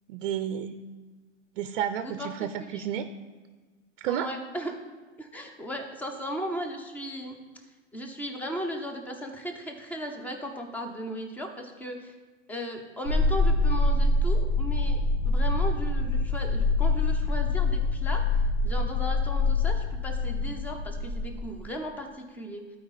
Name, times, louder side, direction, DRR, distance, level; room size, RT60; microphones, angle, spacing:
voice 1, 0.1-0.7 1.6-3.1 4.0-4.3, right 9 dB, 50° right, 10 dB, 0.5 m, -31 dB
voice 2, 2.0-2.3 2.7-2.9 4.1-4.7 5.2-7.4 7.9-12.1 12.5-15.0 15.3-22.8, equal, 5° left, 4 dB, 0.6 m, -36 dB
sound 1, 13.0-21.6, left 2 dB, 70° left, 2.2 m, -25 dB
12.0 x 4.8 x 4.1 m, 1.3 s
hypercardioid pair, 135°, 36 cm